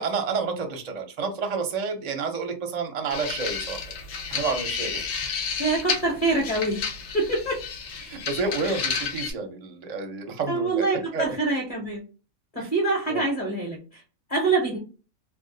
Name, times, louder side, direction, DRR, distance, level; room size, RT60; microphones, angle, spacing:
voice 1, 0.0-3.8 4.3-5.1 8.1-10.9 11.1-11.3 12.6-12.7 13.1-13.2, right 4 dB, 45° right, 4 dB, 0.5 m, -29 dB
sound 1, 3.1-9.3, left 6 dB, 70° left, 1.0 m, -31 dB
voice 2, 5.6-6.8 7.1-7.6 8.6-8.8 10.5-12.0 12.5-14.0 14.3-14.8, right 3 dB, 30° left, -2 dB, 1.0 m, -25 dB
2.5 x 2.4 x 3.8 m, 0.34 s
omnidirectional pair, 1.5 m